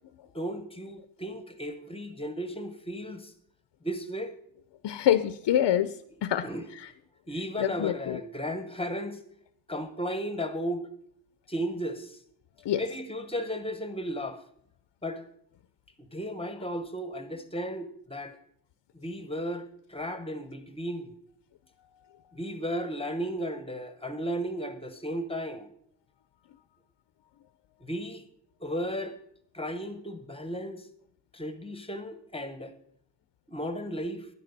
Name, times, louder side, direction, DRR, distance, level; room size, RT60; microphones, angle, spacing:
voice 1, 0.3-3.3 3.8-4.3 6.4-6.7 7.3-9.2 9.7-10.9 11.5-12.2 12.7-14.4 15.0-15.2 16.0-18.4 18.9-21.2 22.3-25.7 27.8-28.2 28.6-29.2 29.5-30.9 31.3-32.7 33.5-34.3, equal, 15° left, 1.0 m, -35 dB
voice 2, 4.8-6.0 6.2-6.5 7.6-8.2 12.7-12.8, left 11 dB, 75° left, 0.6 m, -25 dB
12.0 x 10.0 x 4.0 m
wide cardioid pair, 135°, 43 cm